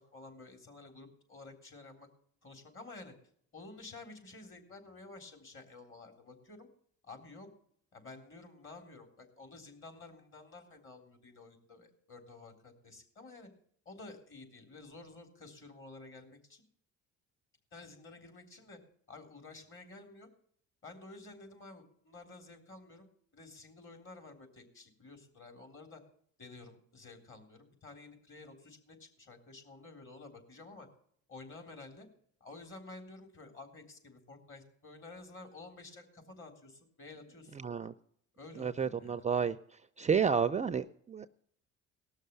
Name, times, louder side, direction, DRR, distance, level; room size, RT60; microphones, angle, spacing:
voice 1, 0.0-2.1 2.4-3.1 3.5-6.7 7.0-7.5 7.9-13.5 13.9-16.6 17.7-18.8 19.1-20.3 20.8-23.1 23.3-26.0 26.4-30.9 31.3-32.1 32.4-37.6 38.4-39.2, left 3 dB, 40° left, 5 dB, 3.9 m, -51 dB
voice 2, 37.5-37.9 38.5-39.6 40.0-41.3, right 6 dB, 25° right, 12 dB, 0.5 m, -31 dB
18.5 x 6.5 x 6.9 m, 0.65 s
cardioid pair, 100°, 31 cm